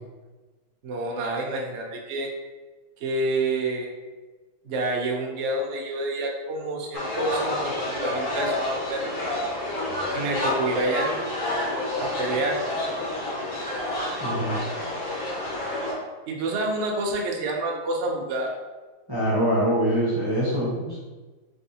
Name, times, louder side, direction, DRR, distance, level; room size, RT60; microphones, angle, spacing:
voice 1, 0.8-2.3 3.0-3.9 4.6-7.7 8.0-9.1 10.1-11.1 12.0-12.6 16.3-18.5, right 2 dB, 90° right, 0 dB, 0.6 m, -28 dB
sound 1, 6.9-15.9, left 1 dB, 85° left, 2.0 m, -29 dB
voice 2, 14.2-14.6 19.1-21.0, equal, 35° right, -9 dB, 0.3 m, -24 dB
4.1 x 3.5 x 2.7 m, 1.3 s
omnidirectional pair, 2.1 m